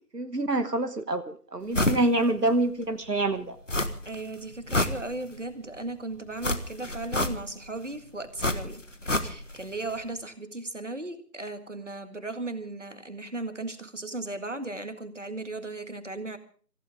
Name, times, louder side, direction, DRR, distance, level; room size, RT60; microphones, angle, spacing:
voice 1, 0.1-3.6, right 2 dB, 80° right, 9 dB, 1.4 m, -26 dB
sound 1, 1.7-2.1 2.5-2.6 3.7-4.2 4.5-5.5 6.4-7.7 8.4-9.6 9.9-10.0, left 1 dB, 50° left, 1.5 m, -28 dB
voice 2, 4.1-8.8 9.2-16.4, right 2 dB, 50° right, 9 dB, 2.0 m, -36 dB
26.0 x 15.5 x 3.5 m, 0.42 s
figure-of-eight pair, 180°, 47 cm